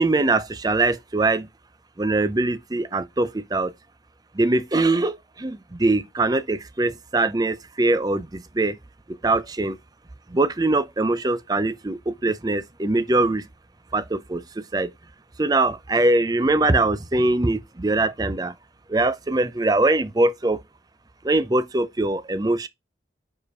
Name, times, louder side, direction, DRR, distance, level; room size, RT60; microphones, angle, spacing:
voice 1, 0.0-1.5 2.0-3.7 4.3-8.8 9.2-9.8 10.3-13.4 13.9-14.9 15.4-18.5 18.9-20.6 21.2-22.7, right 2 dB, 20° right, 0.5 m, -22 dB
4.9 x 4.9 x 4.7 m
head